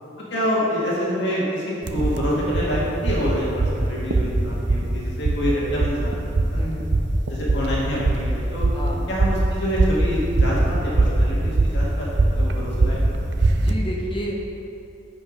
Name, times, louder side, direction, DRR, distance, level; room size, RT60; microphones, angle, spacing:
voice 1, 0.3-6.7 7.3-8.7 9.1-13.3, equal, 75° left, -6 dB, 1.9 m, -26 dB
sound 1, 1.8-13.7, right 2 dB, 70° right, 0.6 m, -22 dB
voice 2, 6.5-6.9 8.7-9.1 13.5-14.3, equal, 30° left, -2 dB, 1.2 m, -31 dB
9.6 x 5.5 x 5.3 m, 2.7 s
head